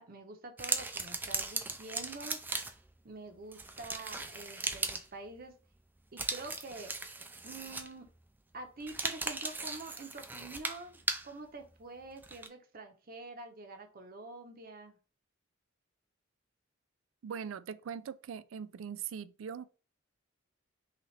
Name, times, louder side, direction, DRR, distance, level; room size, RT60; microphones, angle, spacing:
voice 1, 0.0-2.4 3.0-5.5 6.1-6.9 7.4-8.1 8.5-15.0, right 3 dB, 45° right, 0.8 m, -47 dB
sound 1, 0.6-2.9 3.5-5.1 6.2-8.1 8.8-11.3 12.2-12.5, right 3 dB, 10° right, 0.3 m, -37 dB
voice 2, 17.2-19.6, right 7 dB, 80° right, 0.4 m, -41 dB
5.7 x 2.5 x 3.2 m
head